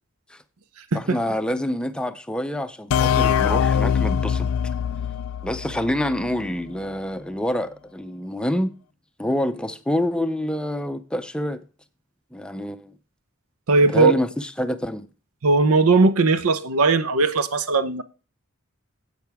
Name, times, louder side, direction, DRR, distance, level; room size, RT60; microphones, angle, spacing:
voice 1, 0.9-4.5 5.4-8.8 9.2-11.6 12.3-12.9 13.9-15.1, left 1 dB, 5° left, 0.5 m, -27 dB
sound 1, 2.9-6.5, left 7 dB, 75° left, 0.3 m, -23 dB
voice 2, 13.7-14.1 15.4-18.0, right 3 dB, 80° right, 0.8 m, -18 dB
10.5 x 8.2 x 3.5 m
head